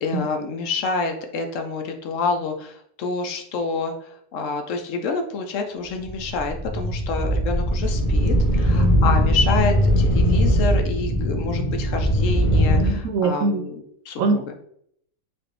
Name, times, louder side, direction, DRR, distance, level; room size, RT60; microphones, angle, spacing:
voice 1, 0.0-14.5, left 4 dB, 70° left, 4 dB, 0.9 m, -28 dB
sound 1, 6.0-12.9, equal, 30° left, 0.7 m, -20 dB
voice 2, 12.8-13.6 14.2-14.5, right 3 dB, 75° right, 6 dB, 0.9 m, -23 dB
4.2 x 2.4 x 3.3 m, 0.69 s
omnidirectional pair, 1.5 m